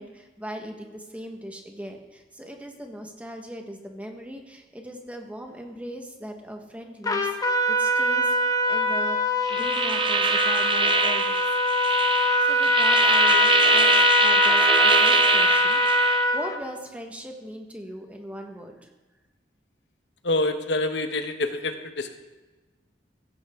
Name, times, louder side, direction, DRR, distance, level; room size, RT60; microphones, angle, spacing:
voice 1, 0.0-8.4 8.7-11.4 12.1-18.9, equal, 10° right, 3 dB, 1.3 m, -39 dB
Trumpet, 7.0-16.6, left 2 dB, 20° left, 0.9 m, -23 dB
sound 1, 9.5-16.2, right 5 dB, 30° right, 0.8 m, -23 dB
voice 2, 20.2-22.2, left 2 dB, 75° left, 7 dB, 1.0 m, -26 dB
15.5 x 9.7 x 3.6 m, 1.2 s
head